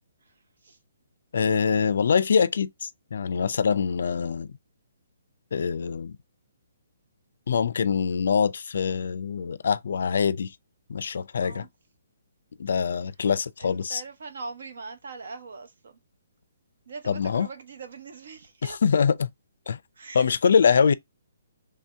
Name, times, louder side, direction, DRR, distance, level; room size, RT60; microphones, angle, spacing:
voice 1, 0.2-0.8 1.6-2.0 11.4-11.7 13.6-16.0 16.9-18.8 19.9-20.4 20.6-20.9, right 4 dB, 65° right, 1.1 m, -42 dB
voice 2, 1.3-4.5 5.5-6.2 7.5-10.5 10.9-11.6 12.6-14.0 17.1-17.5 18.8-19.3 19.7-19.8 20.1-20.9, left 6 dB, 60° left, 0.4 m, -24 dB
3.3 x 2.8 x 3.4 m
hypercardioid pair, 170°, 0 cm